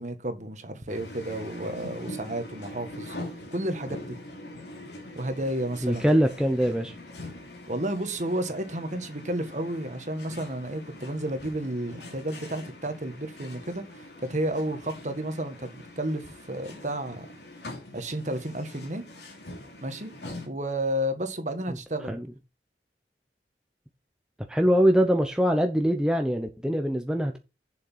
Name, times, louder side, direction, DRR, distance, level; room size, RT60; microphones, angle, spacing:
voice 1, 0.0-3.1 3.5-4.2 5.1-6.1 7.7-17.3 17.9-19.0 19.8-20.1 20.4-22.2, right 1 dB, 45° right, 1.6 m, -32 dB
sound 1, 0.9-20.5, left 1 dB, 75° left, 2.9 m, -43 dB
voice 2, 5.8-6.9 22.1-22.3 24.5-27.4, equal, 5° right, 0.8 m, -23 dB
7.3 x 6.4 x 5.6 m
head